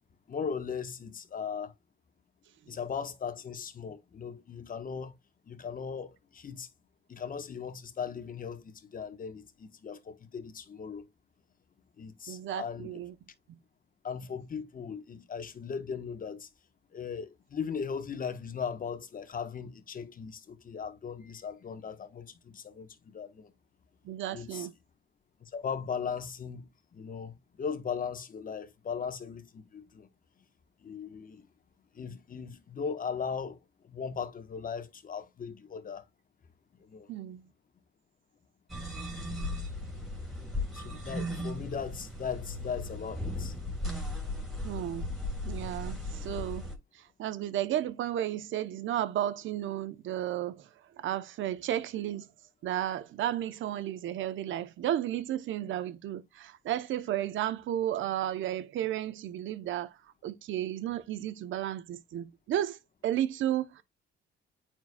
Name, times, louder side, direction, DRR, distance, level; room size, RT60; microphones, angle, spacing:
voice 1, 0.3-1.7 2.7-5.2 5.5-6.7 7.1-11.0 12.0-13.0 14.0-16.5 16.9-23.5 24.3-24.7 25.4-30.1 30.8-31.5 31.9-36.0 36.8-37.1 40.7-43.5, left 6 dB, 45° left, 1.2 m, -38 dB
voice 2, 12.3-13.1 24.0-24.7 37.1-37.4 44.6-45.1 45.4-46.6 47.2-50.6 51.0-52.3 52.6-59.9 60.2-62.8 63.0-63.8, right 12 dB, 75° right, 0.9 m, -33 dB
sound 1, 38.7-46.7, left 1 dB, ahead, 3.5 m, -37 dB
9.3 x 4.5 x 2.3 m
cardioid pair, 90°, 20 cm